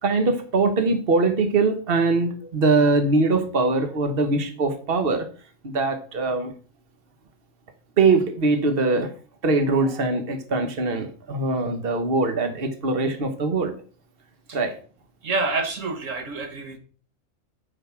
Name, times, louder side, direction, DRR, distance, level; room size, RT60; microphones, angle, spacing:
voice 1, 0.0-5.3 5.6-6.5 8.0-9.1 9.4-13.7 14.5-14.7, right 3 dB, 50° right, 7 dB, 1.5 m, -22 dB
voice 2, 15.2-16.8, right 3 dB, 75° right, 6 dB, 1.6 m, -27 dB
9.1 x 5.9 x 6.0 m, 0.40 s
omnidirectional pair, 1.3 m